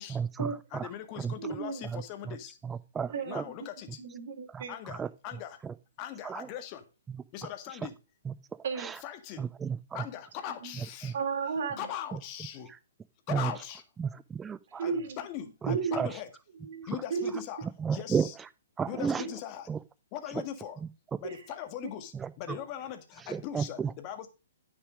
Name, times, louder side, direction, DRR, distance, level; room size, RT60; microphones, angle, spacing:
voice 1, 0.0-0.5 1.2-1.3 1.9-2.0 2.6-3.4 4.5-4.6 5.0-5.1 6.2-6.5 8.3-8.4 8.8-8.9 9.4-9.8 11.0-11.1 13.3-13.5 14.0-14.8 15.6-16.1 17.8-18.3 18.8-19.2 19.7-19.8 22.2-22.3 23.3-23.9, right 6 dB, 10° right, 0.6 m, -32 dB
voice 2, 0.7-2.6 3.3-4.0 4.7-5.6 6.0-6.9 7.3-7.9 9.0-9.5 9.9-11.1 11.8-12.7 13.3-13.8 14.8-16.3 16.9-18.4 18.9-19.7 20.1-20.8 21.2-24.3, left 10 dB, 35° left, 1.7 m, -40 dB
voice 3, 1.4-1.8 3.1-3.5 4.0-4.7 8.6-8.9 10.5-10.8 11.1-11.9 14.8-15.2 15.7-16.0 16.6-17.3 19.2-19.3 21.2-21.5, right 5 dB, 60° right, 3.3 m, -34 dB
9.8 x 6.2 x 5.1 m
hypercardioid pair, 140°, 0 cm